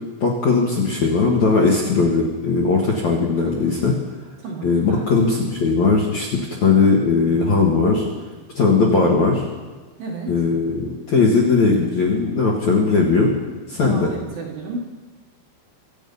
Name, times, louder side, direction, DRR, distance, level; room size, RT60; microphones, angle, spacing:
voice 1, 0.2-4.0 4.6-8.0 8.5-9.4 10.3-13.3 13.7-14.1, left 4 dB, 60° left, -1 dB, 2.1 m, -18 dB
voice 2, 4.4-5.1 10.0-10.3 13.7-14.8, right 3 dB, 60° right, -2 dB, 2.7 m, -32 dB
24.5 x 8.7 x 5.4 m, 1.3 s
omnidirectional pair, 5.6 m